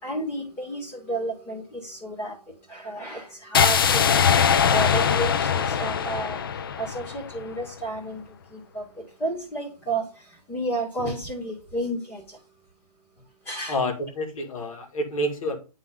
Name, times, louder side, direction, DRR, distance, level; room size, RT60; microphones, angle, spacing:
voice 1, 0.0-2.4 2.7-4.2 4.7-6.4 6.8-8.2 8.5-12.4 13.5-13.8, right 1 dB, 10° left, -2 dB, 2.3 m, -31 dB
sound 1, 3.5-7.6, left 7 dB, 35° left, 0.4 m, -22 dB
voice 2, 13.7-15.6, equal, 55° left, 3 dB, 2.6 m, -28 dB
10.5 x 4.1 x 3.8 m, 0.34 s
hypercardioid pair, 165°, 20 cm